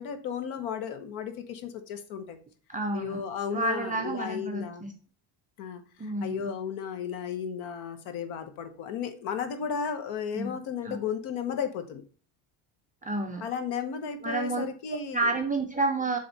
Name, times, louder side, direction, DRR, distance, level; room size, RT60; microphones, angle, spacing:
voice 1, 0.0-2.4 2.9-4.8 5.6-12.0 13.4-15.3, left 7 dB, 70° left, 9 dB, 1.2 m, -34 dB
voice 2, 2.7-3.2 3.5-4.9 6.0-6.5 10.3-10.6 10.8-11.0 13.0-13.5 14.2-14.6 14.9-16.2, right 2 dB, 20° right, 1 dB, 0.3 m, -30 dB
7.6 x 3.4 x 4.0 m, 0.41 s
cardioid pair, 175°, 49 cm